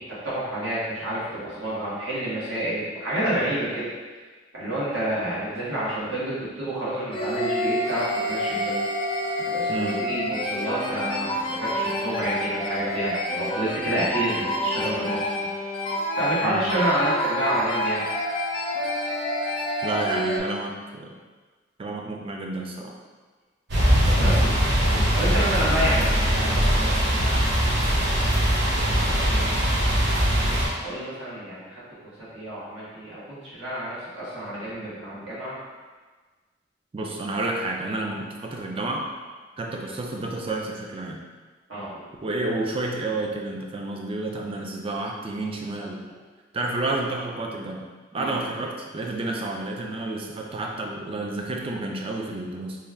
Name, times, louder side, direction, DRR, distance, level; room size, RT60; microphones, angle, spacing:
voice 1, 0.0-3.9 4.5-8.8 9.4-15.2 16.2-18.0 24.2-24.4 24.9-27.6 28.5-29.9 30.8-31.8 32.3-35.6 39.8-39.9 41.7-41.9 48.2-48.3, right 1 dB, 80° right, -9 dB, 1.4 m, -29 dB
sound 1, 7.1-20.4, equal, 25° left, 0.5 m, -28 dB
voice 2, 19.8-21.1 21.8-23.0 24.0-24.6 36.9-39.1 39.6-41.2 42.2-46.0 46.5-47.8 48.1-52.8, right 2 dB, 30° right, 0 dB, 0.4 m, -30 dB
sound 2, 23.7-30.7, equal, 65° right, 0.9 m, -21 dB
3.2 x 2.3 x 3.4 m, 1.4 s
head